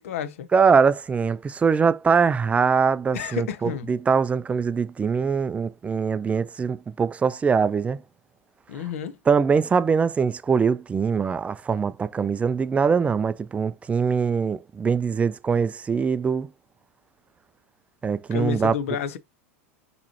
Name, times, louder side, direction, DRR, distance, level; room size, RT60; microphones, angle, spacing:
voice 1, 0.0-0.5 3.1-3.9 8.7-9.2 18.3-19.2, left 8 dB, 70° left, 0.7 m, -30 dB
voice 2, 0.5-8.0 9.3-16.5 18.0-18.7, right 5 dB, 15° right, 0.3 m, -22 dB
5.9 x 3.1 x 2.8 m
hypercardioid pair, 95°, 8 cm